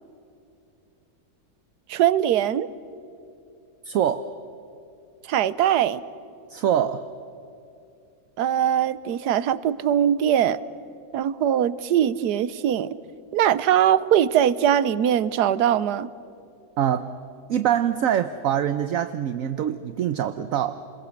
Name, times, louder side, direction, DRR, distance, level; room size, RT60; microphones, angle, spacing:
voice 1, 1.9-2.7 5.3-6.0 8.4-10.6 11.1-13.0 13.3-16.1, right 10 dB, 80° right, 16 dB, 1.3 m, -21 dB
voice 2, 3.9-4.3 6.5-7.0 16.8-17.1 17.5-20.7, right 10 dB, 65° right, 11 dB, 1.1 m, -24 dB
29.5 x 22.0 x 6.4 m, 2.6 s
omnidirectional pair, 1.7 m